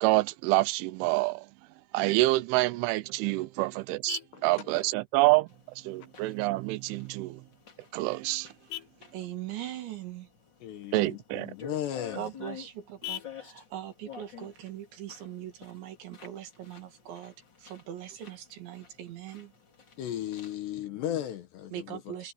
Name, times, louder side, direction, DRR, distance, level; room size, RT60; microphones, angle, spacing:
voice 1, 0.0-1.5 1.9-5.5 5.8-7.4 7.9-8.5 10.9-11.5, right 20 dB, 80° right, 3.0 m, -27 dB
Vehicle horn car horn honking, 2.8-15.8, left 17 dB, 85° left, 2.5 m, -49 dB
sound 1, 5.5-20.5, left 7 dB, 40° left, 1.8 m, -51 dB
voice 2, 9.1-10.3 12.1-19.5 21.7-22.3, right 11 dB, 65° right, 4.5 m, -41 dB
voice 3, 10.6-12.3 20.0-22.1, left 11 dB, 70° left, 3.0 m, -36 dB
omnidirectional pair, 5.9 m